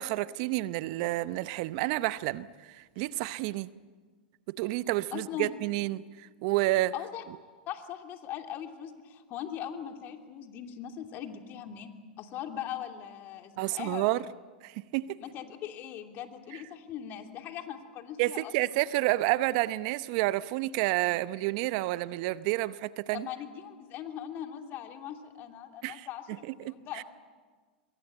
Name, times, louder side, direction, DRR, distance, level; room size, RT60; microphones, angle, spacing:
voice 1, 0.0-3.7 4.5-6.9 13.6-14.2 14.6-15.2 18.2-23.3 25.8-26.1 26.5-27.0, right 17 dB, 55° right, 0.7 m, -30 dB
voice 2, 5.1-5.5 6.9-7.2 7.7-14.2 15.2-18.5 23.1-27.0, left 10 dB, 45° left, 2.9 m, -40 dB
24.5 x 22.5 x 8.6 m
hypercardioid pair, 105°, 5 cm